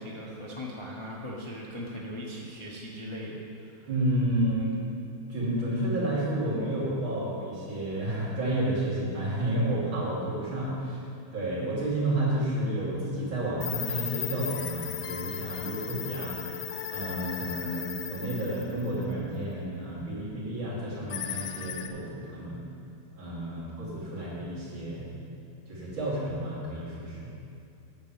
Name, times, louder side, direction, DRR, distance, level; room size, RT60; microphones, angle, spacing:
voice 1, 0.0-3.9, equal, 40° left, -4 dB, 0.4 m, -39 dB
voice 2, 3.9-4.7 5.3-11.0 11.3-16.4 16.9-22.6 23.2-25.2 25.7-27.3, right 1 dB, 65° right, -7 dB, 3.3 m, -31 dB
sound 1, 13.6-19.1 21.1-21.9, left 10 dB, 80° left, 1.4 m, -36 dB
8.6 x 6.4 x 7.3 m, 2.6 s
omnidirectional pair, 2.4 m